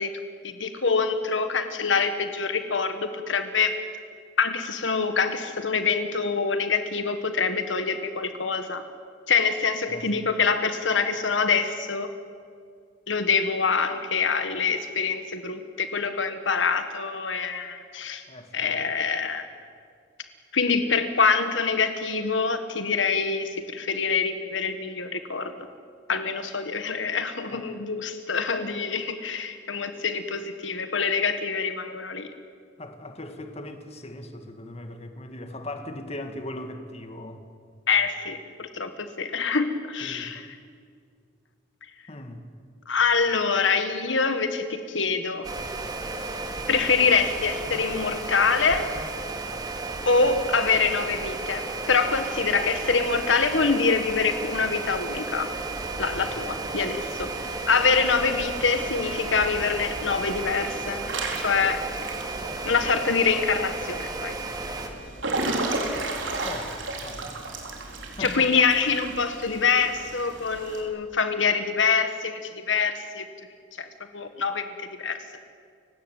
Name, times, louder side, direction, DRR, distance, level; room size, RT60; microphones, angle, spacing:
voice 1, 0.0-3.8 4.4-8.8 9.3-12.1 13.1-18.2 18.5-19.5 20.5-25.5 26.1-32.3 37.9-40.4 42.9-45.5 46.7-48.9 50.0-55.5 56.0-61.0 61.4-61.9 62.6-64.3 68.2-72.4 72.7-73.2 73.8-73.9 74.1-75.2, left 5 dB, 75° left, 8 dB, 1.5 m, -25 dB
voice 2, 9.9-10.3 18.3-18.7 27.5-27.7 32.8-37.5 40.0-40.5 42.1-42.5 56.1-56.3 66.4-66.8 67.0-67.3 68.2-68.5, left 1 dB, 35° left, 6 dB, 2.1 m, -39 dB
sound 1, 45.4-64.9, right 3 dB, 20° right, 2.5 m, -33 dB
Water / Splash splatter / Drip, 55.5-70.8, right 2 dB, 80° right, 4.2 m, -35 dB
30.0 x 17.0 x 9.2 m, 2.2 s
head